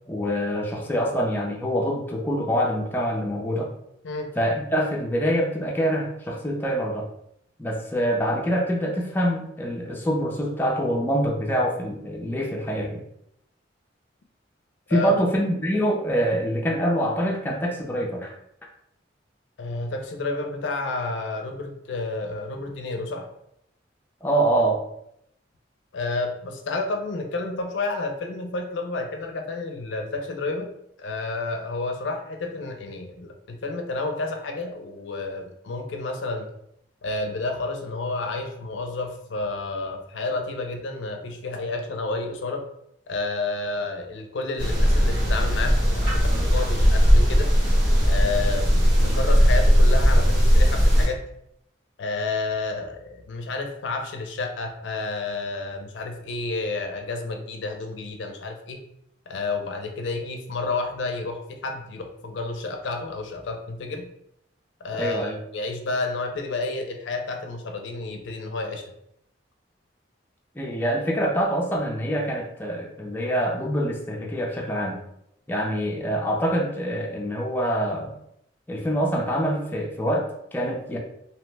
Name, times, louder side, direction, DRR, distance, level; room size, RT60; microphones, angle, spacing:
voice 1, 0.1-3.7 4.4-7.1 7.6-13.0 14.9-18.4 24.2-24.8 64.9-65.4 70.6-75.0 75.5-78.1 78.7-81.0, equal, 10° left, -1 dB, 0.4 m, -25 dB
voice 2, 14.9-15.2 19.6-23.3 25.9-30.7 31.0-36.5 37.0-42.6 43.1-47.5 48.0-51.2 52.0-58.8 59.3-64.1 64.8-68.8, left 3 dB, 70° left, 5 dB, 0.4 m, -30 dB
sound 1, 44.6-51.1, equal, 80° right, 1.3 m, -18 dB
2.8 x 2.1 x 3.2 m, 0.75 s
head